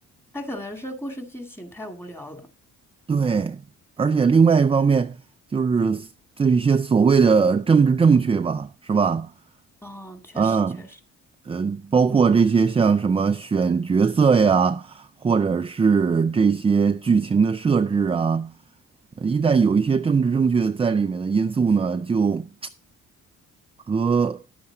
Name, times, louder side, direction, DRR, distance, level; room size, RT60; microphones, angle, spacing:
voice 1, 0.3-2.5 9.8-11.0, equal, 10° left, 2.3 m, -37 dB
voice 2, 3.1-3.6 4.0-5.2 5.5-6.1 6.4-9.3 10.4-10.8 11.5-18.5 19.2-22.5 23.9-24.4, right 5 dB, 20° right, 0.4 m, -20 dB
11.0 x 7.9 x 5.0 m
cardioid pair, 90°, 30 cm